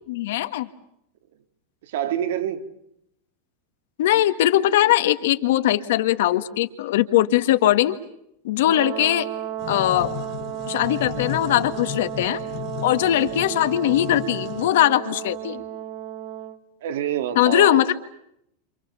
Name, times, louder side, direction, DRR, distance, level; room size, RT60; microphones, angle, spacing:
voice 1, 0.1-0.7 4.0-8.0 8.4-9.3 9.7-10.2 10.7-12.4 12.8-15.6 17.4-17.9, left 13 dB, 65° left, 10 dB, 1.7 m, -20 dB
voice 2, 1.9-2.7 16.8-17.9, right 10 dB, 65° right, 8 dB, 2.5 m, -27 dB
Brass instrument, 8.6-16.6, right 13 dB, 40° right, 2.6 m, -33 dB
sound 1, 9.6-14.7, left 15 dB, 35° left, 1.2 m, -35 dB
29.5 x 27.5 x 7.1 m, 0.76 s
supercardioid pair, 170°, 0 cm